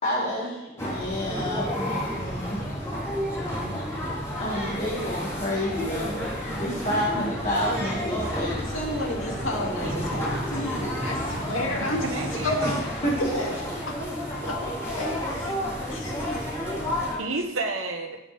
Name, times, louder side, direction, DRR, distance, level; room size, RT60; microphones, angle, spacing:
voice 1, 0.0-2.8 4.3-6.2 6.5-8.7 12.6-12.7 13.0-13.1, equal, 35° left, -7 dB, 2.2 m, -29 dB
sound 1, 0.8-17.2, equal, 15° left, 4.0 m, -31 dB
voice 2, 8.7-12.0 12.4-12.6 13.2-13.5 13.9-14.1 14.4-15.5 15.9-16.4, left 1 dB, 80° left, -1 dB, 2.5 m, -31 dB
voice 3, 11.8-12.8 17.2-18.2, right 3 dB, 90° right, 2 dB, 1.1 m, -31 dB
16.5 x 7.3 x 3.5 m, 1.0 s
head